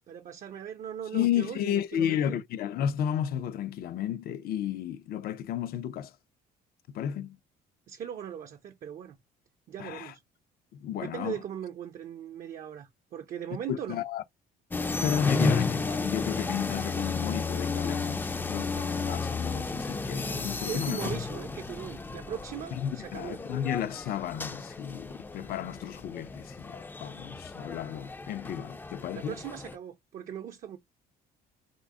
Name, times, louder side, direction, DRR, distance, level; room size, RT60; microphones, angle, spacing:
voice 1, 0.1-2.4 7.9-9.2 9.7-10.2 11.0-14.0 20.7-23.4 29.1-30.8, right 9 dB, 50° right, 0.5 m, -39 dB
voice 2, 1.1-6.1 6.9-7.4 9.8-10.1 10.7-11.4 13.7-14.2 14.8-21.1 22.7-29.3, left 9 dB, 65° left, 0.5 m, -32 dB
sound 1, 14.7-29.8, left 4 dB, 10° left, 0.4 m, -33 dB
3.7 x 2.0 x 3.5 m
cardioid pair, 110°, 17 cm